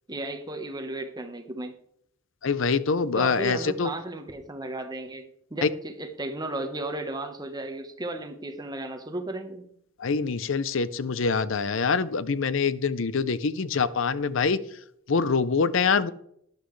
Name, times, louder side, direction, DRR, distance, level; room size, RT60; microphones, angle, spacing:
voice 1, 0.1-1.7 3.1-9.6, right 2 dB, 20° right, 5 dB, 1.1 m, -34 dB
voice 2, 2.4-3.9 5.6-5.7 10.0-14.6 15.1-16.1, left 5 dB, 65° left, 16 dB, 0.6 m, -25 dB
11.5 x 10.5 x 3.2 m, 0.70 s
head